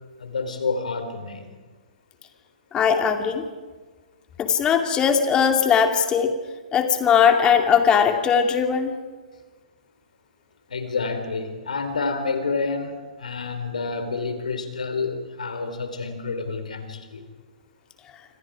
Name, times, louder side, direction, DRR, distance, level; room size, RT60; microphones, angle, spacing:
voice 1, 0.2-1.5 10.7-17.3, left 4 dB, 70° left, 8 dB, 3.8 m, -29 dB
voice 2, 2.7-3.5 4.4-6.3 6.7-8.9, left 7 dB, 20° left, 6 dB, 2.6 m, -19 dB
27.5 x 26.0 x 5.0 m, 1.4 s
figure-of-eight pair, 115°, 4 cm